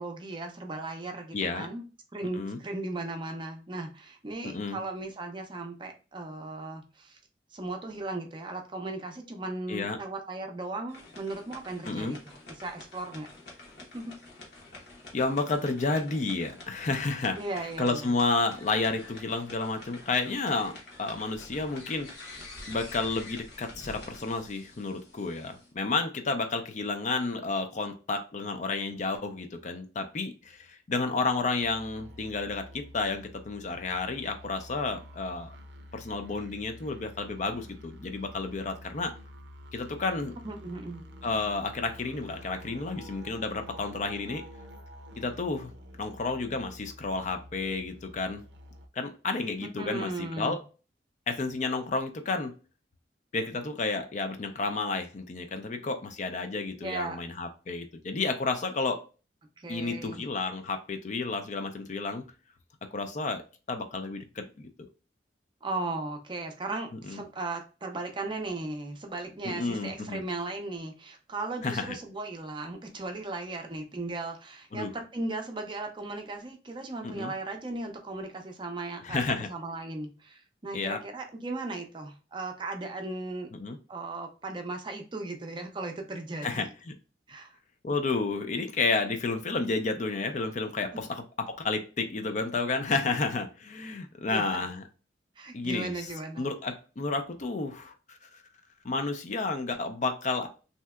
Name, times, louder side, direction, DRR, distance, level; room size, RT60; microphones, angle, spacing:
voice 1, 0.0-1.8 2.1-7.2 7.5-13.3 13.9-14.1 17.4-18.0 40.4-41.0 49.8-50.6 56.8-57.2 59.6-60.2 65.6-79.2 79.5-83.5 83.9-86.7 87.3-87.5 90.9-91.0 93.1-93.2 94.3-94.5 95.4-96.5, right 2 dB, 25° right, 4 dB, 0.5 m, -37 dB
voice 2, 1.3-1.7 2.3-2.6 4.5-4.8 9.7-10.0 11.8-12.2 15.1-35.5 35.9-39.1 39.7-40.3 41.2-44.4 45.2-45.7 46.0-48.4 48.9-50.6 51.3-52.5 53.3-59.0 59.7-62.2 62.9-63.4 63.7-64.7 67.1-67.2 69.4-70.2 71.6-72.0 74.7-74.9 77.0-77.3 79.0-79.5 80.7-81.0 83.5-83.8 86.4-86.9 87.8-91.1 91.5-94.8 95.5-98.4 98.8-100.5, left 3 dB, 45° left, 6 dB, 0.4 m, -31 dB
sound 1, 10.9-25.7, left 2 dB, 70° left, 1.1 m, -48 dB
sound 2, 31.6-48.9, equal, 80° right, 0.5 m, -48 dB
3.2 x 2.8 x 2.3 m, 0.34 s
head